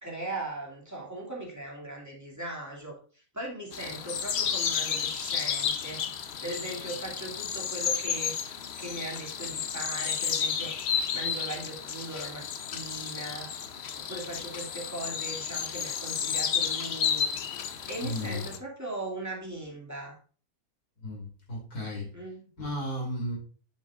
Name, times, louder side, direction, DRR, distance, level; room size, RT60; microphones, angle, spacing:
voice 1, 0.0-6.1 6.4-8.4 8.8-10.8 11.1-12.4 12.7-13.5 14.1-17.3 17.5-17.6 17.9-20.2 22.1-22.4, right 2 dB, 10° right, -3 dB, 2.2 m, -39 dB
sound 1, 3.7-18.6, left 7 dB, 55° left, 0.8 m, -32 dB
voice 2, 18.0-18.4 21.0-22.1 22.6-23.4, left 1 dB, 80° left, -1 dB, 3.5 m, -34 dB
8.2 x 7.1 x 2.4 m, 0.39 s
omnidirectional pair, 1.6 m